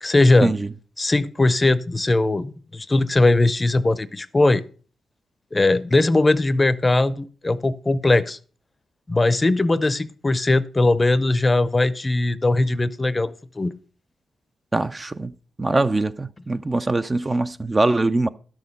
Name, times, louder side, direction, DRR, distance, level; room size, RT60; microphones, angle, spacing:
voice 1, 0.0-0.5 1.0-4.6 5.5-8.4 9.1-13.7, left 2 dB, 25° left, 0.6 m, -19 dB
voice 2, 14.7-15.3 15.6-18.3, right 2 dB, 25° right, 0.5 m, -22 dB
12.0 x 6.3 x 5.3 m
cardioid pair, 60°, 0 cm